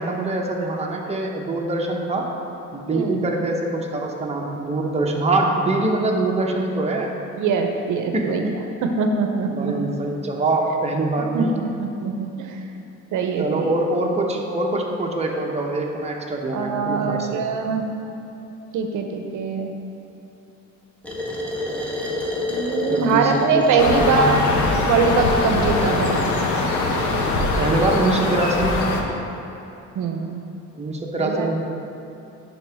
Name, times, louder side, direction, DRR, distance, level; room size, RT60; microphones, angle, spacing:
voice 1, 0.0-2.3 2.7-7.1 8.1-8.6 9.5-11.6 13.4-17.4 22.9-24.3 27.6-29.0 30.8-31.6, right 2 dB, 20° right, -1 dB, 0.9 m, -24 dB
voice 2, 7.4-8.4 8.8-9.7 11.3-12.6 13.1-13.7 16.5-17.8 18.7-19.7 22.5-24.5 24.9-26.2 30.0-30.4 31.2-31.5, right 4 dB, 80° right, 4 dB, 0.7 m, -22 dB
sound 1, 21.0-28.2, left 1 dB, 5° left, 1.2 m, -29 dB
sound 2, 23.8-29.0, left 3 dB, 70° left, 0.9 m, -22 dB
11.0 x 3.8 x 3.5 m, 2.9 s
cardioid pair, 90°, 30 cm